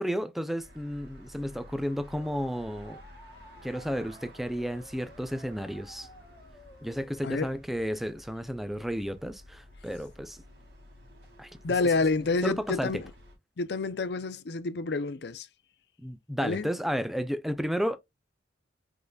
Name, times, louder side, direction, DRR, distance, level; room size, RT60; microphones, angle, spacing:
voice 1, 0.0-3.0 3.6-6.1 6.8-10.4 11.4-11.5 12.4-13.0 16.0-18.0, equal, ahead, 0.4 m, -32 dB
sound 1, 0.6-13.3, equal, 60° right, 2.1 m, -52 dB
sound 2, 2.1-7.3, equal, 20° left, 1.5 m, -54 dB
voice 2, 11.6-13.1 13.6-15.5 16.4-16.7, left 3 dB, 60° left, 0.5 m, -28 dB
5.5 x 3.8 x 2.3 m
head